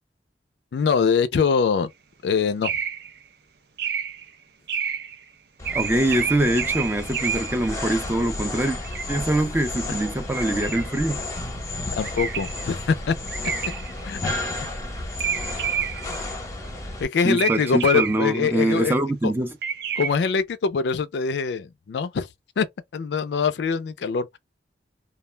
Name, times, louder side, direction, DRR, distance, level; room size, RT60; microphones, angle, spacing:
voice 1, 0.7-1.9 2.2-2.7 12.0-13.2 14.0-14.4 17.0-18.9 19.2-19.3 20.0-22.3 22.6-22.7 22.9-24.4, left 5 dB, 75° left, 0.4 m, -23 dB
sound 1, 2.6-3.2 3.8-4.3 4.7-5.2 5.6-7.7 8.7-9.2 10.3-11.1 12.0-12.7 13.3-14.0 15.2-16.2 17.4-18.5 19.6-20.1, right 8 dB, 65° right, 0.5 m, -29 dB
sound 2, 5.6-17.0, left 2 dB, 15° left, 0.8 m, -32 dB
voice 2, 5.7-8.8 9.1-11.2 17.2-19.5, right 1 dB, 10° right, 0.5 m, -24 dB
2.3 x 2.1 x 3.2 m
head